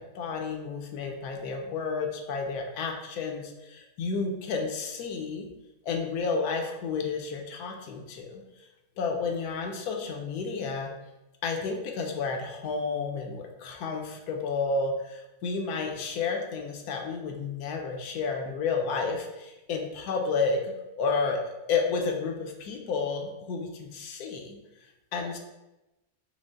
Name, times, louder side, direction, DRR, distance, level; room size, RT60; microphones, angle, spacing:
voice 1, 0.0-5.5 5.8-8.4 9.0-10.9 11.4-24.6 25.1-25.4, left 4 dB, 70° left, 2 dB, 1.0 m, -31 dB
5.1 x 2.0 x 3.7 m, 0.98 s
omnidirectional pair, 1.8 m